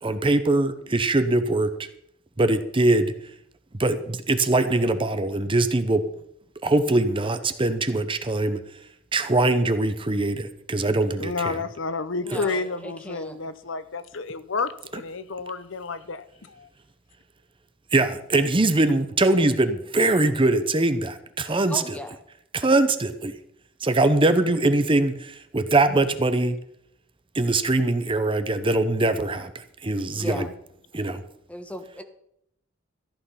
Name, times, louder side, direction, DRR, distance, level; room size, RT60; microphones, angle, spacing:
voice 1, 0.0-1.7 2.4-3.1 3.8-6.0 6.6-8.6 9.1-11.5 17.9-21.8 22.5-23.3 23.8-26.6 27.3-30.5 30.9-31.2, right 2 dB, 25° right, 10 dB, 0.8 m, -22 dB
voice 2, 11.2-16.7 30.2-30.5, left 4 dB, 65° left, 14 dB, 0.8 m, -31 dB
voice 3, 12.2-13.4 21.7-22.2 30.1-30.5 31.5-32.0, left 1 dB, 5° left, 6 dB, 1.3 m, -37 dB
14.5 x 9.3 x 5.7 m, 0.72 s
head